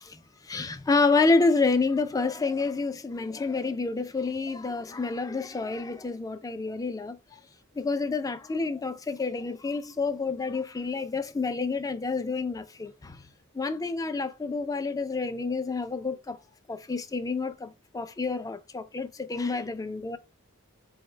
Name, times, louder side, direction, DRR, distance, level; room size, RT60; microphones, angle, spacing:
voice 1, 0.4-7.2 7.8-13.2 13.5-16.4 16.7-20.2, left 3 dB, 15° left, 0.3 m, -28 dB
4.5 x 2.1 x 3.1 m
head